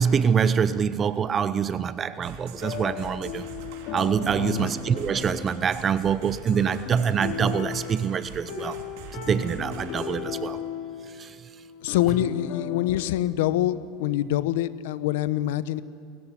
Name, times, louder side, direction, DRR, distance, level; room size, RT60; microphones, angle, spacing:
voice 1, 0.0-3.5 3.9-8.8 9.1-10.6 11.2-11.4, right 7 dB, 25° right, 0.6 m, -25 dB
sound 1, 2.2-10.2, right 7 dB, 65° right, 3.4 m, -43 dB
sound 2, 2.5-13.2, left 7 dB, 60° left, 2.7 m, -37 dB
voice 2, 4.4-4.7 11.8-15.8, left 13 dB, 80° left, 0.9 m, -25 dB
29.0 x 14.5 x 10.0 m
supercardioid pair, 140°, 0 cm